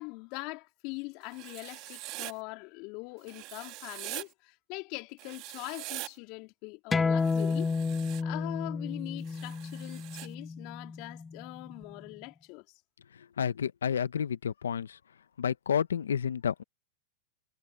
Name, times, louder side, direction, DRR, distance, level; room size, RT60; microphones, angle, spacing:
voice 1, 0.0-7.7 8.2-12.7, left 27 dB, 50° left, 3.9 m, -42 dB
Writing, 1.3-2.3 3.3-4.2 5.2-6.1 7.2-8.2 9.2-10.3, right 21 dB, 50° right, 3.8 m, -43 dB
sound 1, 6.9-12.1, left 4 dB, 15° left, 0.8 m, -31 dB
voice 2, 13.4-15.0 15.4-16.6, left 7 dB, 85° left, 1.1 m, -30 dB
hypercardioid pair, 105°, 0 cm